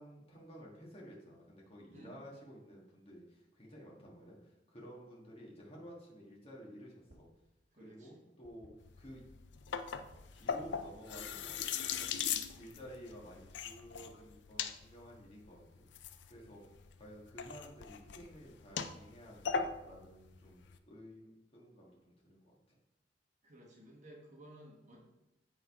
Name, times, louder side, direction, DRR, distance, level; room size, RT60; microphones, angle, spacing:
voice 1, 0.0-7.3 7.8-8.7 9.0-9.2 10.3-11.6 11.9-12.2 12.5-15.9 16.2-16.6 16.9-22.8, equal, 35° left, -3 dB, 1.6 m, -53 dB
sound 1, 7.1-7.4 7.7-9.3 9.8-10.8 11.1-11.5 12.0-12.8, equal, 65° right, 1.7 m, -63 dB
voice 2, 7.7-8.3 23.4-25.1, right 1 dB, 45° right, -2 dB, 1.3 m, -56 dB
sound 2, 8.8-20.8, left 6 dB, 80° left, 0.5 m, -41 dB
8.5 x 3.9 x 4.8 m, 0.93 s
head